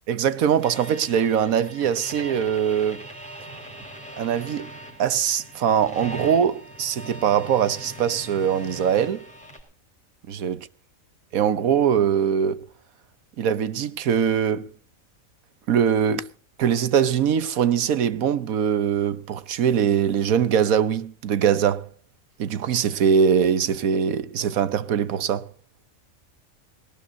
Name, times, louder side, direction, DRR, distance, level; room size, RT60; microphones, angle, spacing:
voice 1, 0.1-3.0 4.2-4.7 5.0-9.2 10.3-10.6 11.3-12.7 13.4-14.7 15.7-16.3 16.6-21.9 22.4-25.5, right 8 dB, 85° right, 1.4 m, -22 dB
sound 1, 0.6-9.6, right 1 dB, 5° left, 5.0 m, -40 dB
20.5 x 19.0 x 2.8 m
omnidirectional pair, 1.4 m